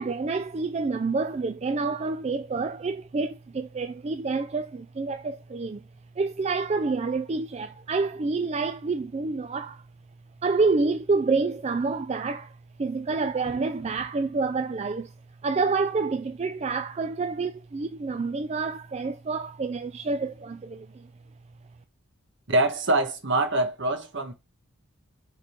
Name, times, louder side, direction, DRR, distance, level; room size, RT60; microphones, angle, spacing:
voice 1, 0.0-5.8 6.2-9.8 10.4-12.5 12.8-15.1 15.4-21.1, right 4 dB, 30° right, 0.3 m, -28 dB
voice 2, 22.5-24.3, right 2 dB, 55° right, 1.4 m, -24 dB
6.8 x 3.7 x 4.5 m
head